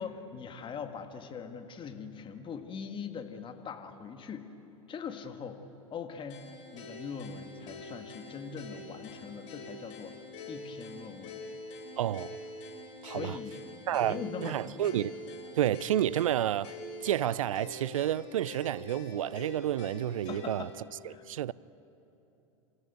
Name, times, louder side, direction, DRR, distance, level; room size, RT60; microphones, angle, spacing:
voice 1, 0.0-4.5 4.9-5.6 5.9-6.4 6.7-10.2 10.5-11.4 13.1-13.6 13.9-15.0 15.6-15.7 20.3-20.7 21.1-21.2, left 6 dB, 30° left, 1.8 m, -41 dB
sound 1, 6.3-20.7, left 2 dB, 65° left, 4.4 m, -45 dB
voice 2, 12.0-12.4 13.0-13.4 13.9-15.2 15.6-16.8 17.0-20.7 21.3-21.5, right 12 dB, 75° right, 0.4 m, -30 dB
27.0 x 14.0 x 9.4 m
hypercardioid pair, 90°, 17 cm